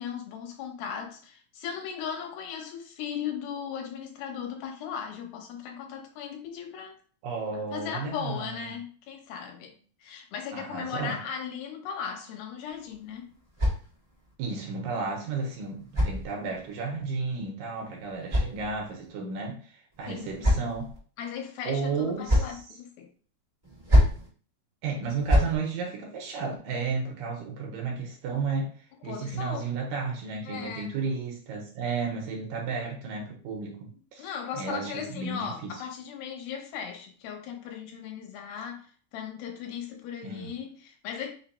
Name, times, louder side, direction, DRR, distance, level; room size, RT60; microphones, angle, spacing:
voice 1, 0.0-6.9 7.7-13.3 20.1-20.5 21.2-23.1 29.0-29.7 30.4-30.9 34.2-41.3, left 7 dB, 80° left, 2 dB, 2.6 m, -37 dB
voice 2, 7.2-8.6 10.5-11.2 14.4-20.9 21.6-22.5 24.8-28.7 29.0-34.3 34.6-35.7 40.2-40.5, right 4 dB, 75° right, 1 dB, 2.3 m, -33 dB
sound 1, 12.7-14.3 15.3-16.8 17.8-19.1 19.9-21.0 21.9-22.6 23.6-24.3 25.0-25.6, left 1 dB, 60° right, 0.4 m, -27 dB
5.8 x 2.0 x 4.1 m, 0.42 s
omnidirectional pair, 4.3 m